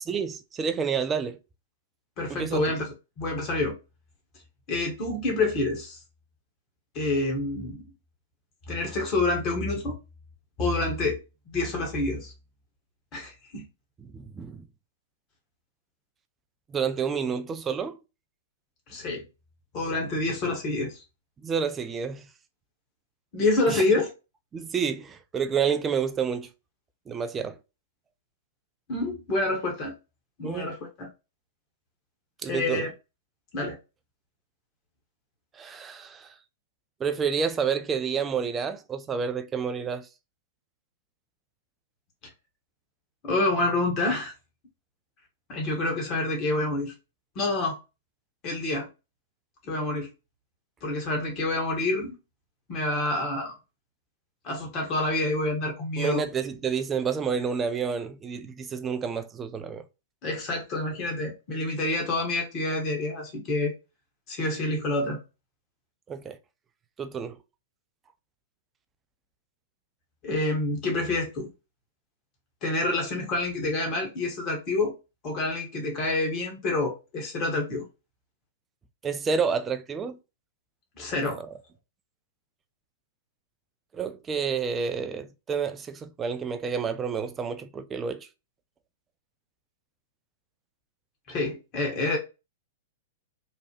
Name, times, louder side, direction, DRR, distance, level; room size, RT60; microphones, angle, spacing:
voice 1, 0.1-1.4 2.3-2.6 14.0-14.7 16.7-18.0 21.4-22.3 23.7-23.8 24.5-26.5 27.1-27.6 30.4-30.7 32.4-32.9 35.5-36.3 37.0-40.1 56.0-59.8 66.1-66.4 67.0-67.4 79.0-80.2 81.3-81.5 83.9-88.3, right 6 dB, 20° right, 0.3 m, -29 dB
voice 2, 2.2-2.9 3.2-3.7 4.7-6.0 6.9-7.8 8.7-10.0 10.6-11.2 11.5-12.3 13.1-13.6 18.9-19.2 19.7-21.0 23.3-24.1 28.9-29.9 30.4-31.1 32.5-32.9 33.5-33.8 43.2-44.3 45.5-46.9 47.3-47.8 48.4-48.9 49.7-50.1 50.8-52.2 52.7-53.5 54.4-56.2 60.2-63.7 64.3-65.2 70.2-71.5 72.6-74.9 75.2-77.8 81.0-81.4 91.3-92.2, left 2 dB, 35° left, 1.1 m, -27 dB
3.2 x 2.1 x 2.8 m
figure-of-eight pair, 105°, 0 cm